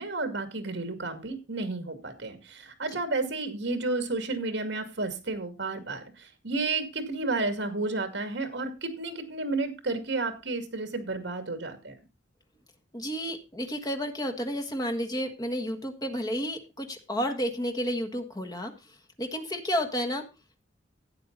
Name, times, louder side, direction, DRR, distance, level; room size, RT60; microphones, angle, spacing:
voice 1, 0.0-12.0, right 3 dB, 65° right, 8 dB, 2.3 m, -32 dB
voice 2, 12.9-20.2, equal, 20° left, 4 dB, 1.5 m, -31 dB
12.0 x 9.0 x 3.9 m, 0.27 s
head